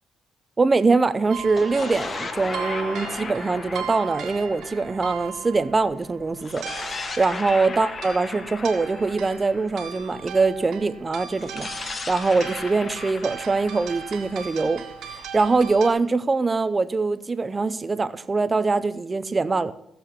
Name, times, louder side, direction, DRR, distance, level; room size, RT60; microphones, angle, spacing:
voice 1, 0.6-14.8 15.1-19.7, right 3 dB, 30° right, 0.8 m, -23 dB
sound 1, 1.3-15.9, right 8 dB, 80° right, 1.6 m, -38 dB
sound 2, 1.4-5.8 6.4-10.3 11.4-15.2, left 4 dB, 40° left, 1.2 m, -36 dB
15.5 x 6.9 x 5.9 m
cardioid pair, 80°, 0 cm